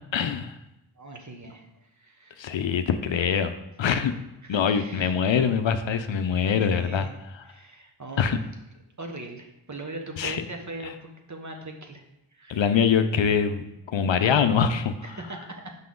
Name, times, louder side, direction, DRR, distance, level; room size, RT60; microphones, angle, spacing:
voice 1, 0.1-0.5 2.4-3.5 3.8-4.1 4.5-7.1 7.3-7.4 8.2-8.4 10.2-10.4 12.5-14.9, left 7 dB, 65° left, 9 dB, 0.6 m, -24 dB
voice 2, 1.0-1.7 2.0-2.4 4.4-5.1 6.6-7.1 7.5-8.3 9.0-12.0 12.3-12.9 15.0-15.8, right 2 dB, 35° right, 3 dB, 1.1 m, -40 dB
5.9 x 5.7 x 3.8 m, 0.92 s
cardioid pair, 55°, 50 cm